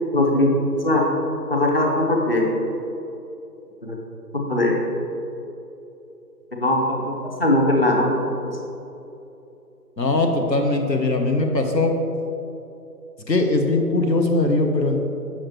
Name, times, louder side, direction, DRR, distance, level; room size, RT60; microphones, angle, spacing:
voice 1, 0.1-1.1 1.5-2.5 3.8-4.0 4.3-4.8 6.6-8.2, left 1 dB, 35° left, 0 dB, 0.9 m, -20 dB
voice 2, 10.0-11.9 13.3-15.0, left 2 dB, 85° left, 3 dB, 1.1 m, -20 dB
7.2 x 6.5 x 3.1 m, 2.9 s
figure-of-eight pair, 155°, 49 cm